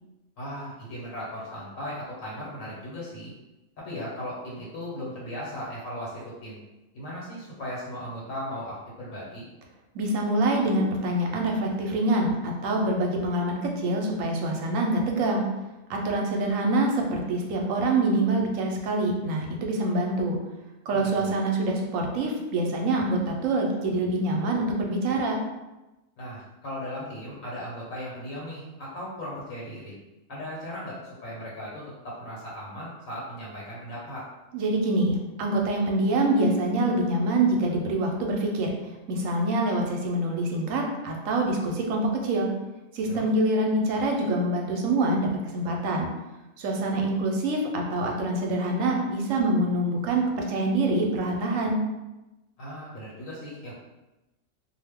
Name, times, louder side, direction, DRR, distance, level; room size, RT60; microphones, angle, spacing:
voice 1, 0.4-3.3 3.8-6.6 6.9-9.4 21.2-21.4 26.2-29.9 30.3-34.2 43.1-43.3 52.6-53.7, equal, 85° left, -6 dB, 1.3 m, -37 dB
voice 2, 9.9-15.4 15.9-20.4 20.9-25.4 34.5-38.7 39.1-42.5 42.9-46.1 46.6-51.8, right 2 dB, 85° right, 1 dB, 1.0 m, -25 dB
2.5 x 2.2 x 3.4 m, 1.0 s
omnidirectional pair, 1.3 m